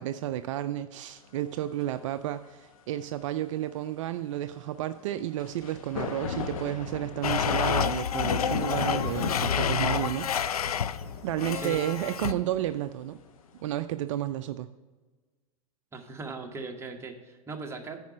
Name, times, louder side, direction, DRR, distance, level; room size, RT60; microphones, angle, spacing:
voice 1, 0.0-10.3 11.2-13.2 13.6-14.7, right 13 dB, 60° right, 11 dB, 0.4 m, -32 dB
sound 1, 1.5-1.6 5.4-13.7, left 6 dB, 65° left, 1.0 m, -36 dB
Domestic sounds home sounds, 7.2-11.0 11.4-12.3, left 8 dB, 85° left, 0.4 m, -28 dB
voice 2, 12.0-12.4 15.9-18.0, right 3 dB, 15° right, 2 dB, 1.2 m, -39 dB
9.3 x 5.0 x 6.0 m, 1.3 s
hypercardioid pair, 100°, 19 cm